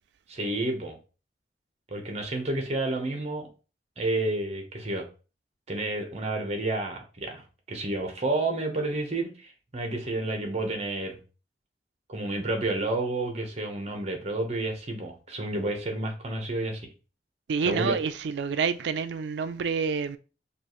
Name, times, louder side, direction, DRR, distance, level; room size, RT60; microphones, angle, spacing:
voice 1, 0.3-1.0 1.9-3.5 4.0-5.1 5.7-11.2 12.1-16.9 17.6-18.0, right 2 dB, 40° right, 0.9 m, -30 dB
voice 2, 17.5-20.2, right 5 dB, 75° right, 0.4 m, -28 dB
5.3 x 2.4 x 3.0 m
head